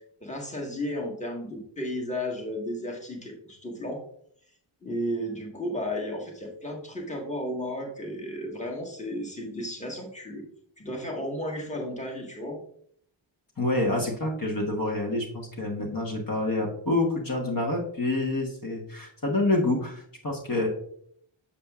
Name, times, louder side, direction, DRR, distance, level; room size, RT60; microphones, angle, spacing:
voice 1, 0.2-4.0 4.8-10.4 10.8-12.6, equal, 15° left, -1 dB, 1.5 m, -33 dB
voice 2, 13.6-20.7, left 2 dB, 45° left, -1 dB, 1.4 m, -27 dB
7.3 x 7.1 x 2.4 m, 0.64 s
wide cardioid pair, 90°, 49 cm